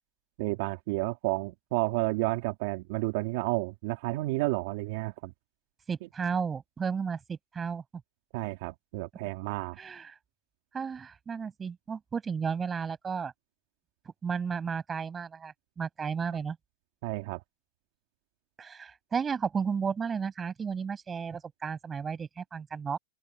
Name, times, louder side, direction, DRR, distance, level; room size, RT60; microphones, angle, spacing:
voice 1, 0.4-5.3 8.3-9.8 17.0-17.4, right 22 dB, 60° right, 2.2 m, -31 dB
voice 2, 5.9-7.8 9.8-10.1 10.7-13.3 14.2-16.6 18.6-23.0, right 6 dB, 20° right, 7.9 m, -33 dB
open air
hypercardioid pair, 120°, 0 cm